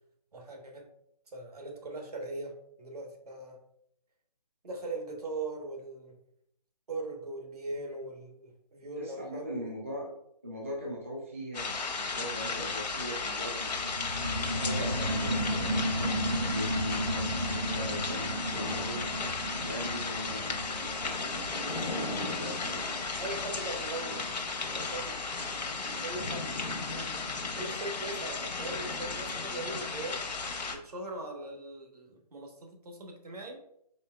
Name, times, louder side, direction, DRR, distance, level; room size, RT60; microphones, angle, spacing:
voice 1, 0.3-0.9 1.3-3.6 4.6-6.2 6.9-9.7 21.6-24.2 24.6-25.2 26.0-26.5 26.9-27.0 27.6-30.2 30.7-33.6, right 2 dB, 65° right, 3 dB, 1.1 m, -40 dB
voice 2, 9.0-10.1 10.4-13.7 14.4-19.1 19.6-20.6 22.3-23.1, equal, 20° right, -3 dB, 0.3 m, -40 dB
sound 1, 11.5-30.8, left 4 dB, 75° left, 0.8 m, -35 dB
sound 2, 13.5-24.7 25.1-25.2, equal, 45° right, 0.7 m, -35 dB
4.3 x 3.6 x 2.2 m, 0.72 s
hypercardioid pair, 165°, 21 cm